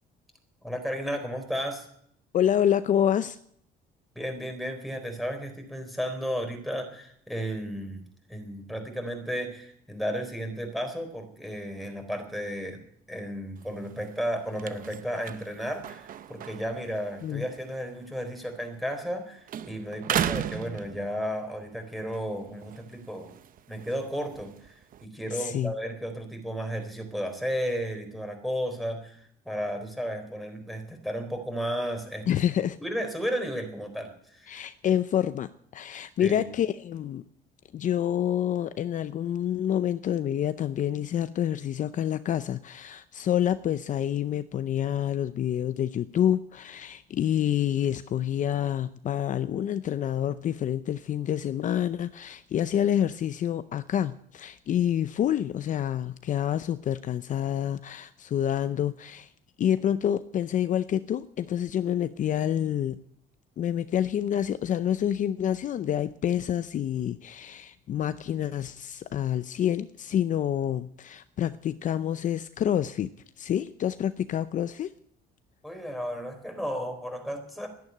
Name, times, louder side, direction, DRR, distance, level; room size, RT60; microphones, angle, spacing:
voice 1, 0.6-1.8 4.2-8.0 8.3-12.8 13.1-23.3 23.7-24.5 25.0-29.2 29.5-32.2 32.8-34.6 36.2-36.4 75.6-77.7, equal, ahead, 4 dB, 4.0 m, -33 dB
voice 2, 2.3-3.4 17.2-17.4 25.3-25.7 32.3-32.8 34.5-37.2 37.7-59.3 59.6-63.0 63.6-73.1 73.4-74.9, left 10 dB, 50° left, 13 dB, 0.6 m, -27 dB
sound 1, 13.6-19.2 19.5-21.5 22.0-25.1, right 9 dB, 55° right, 0.8 m, -37 dB
12.0 x 11.0 x 9.7 m, 0.68 s
cardioid pair, 110°, 17 cm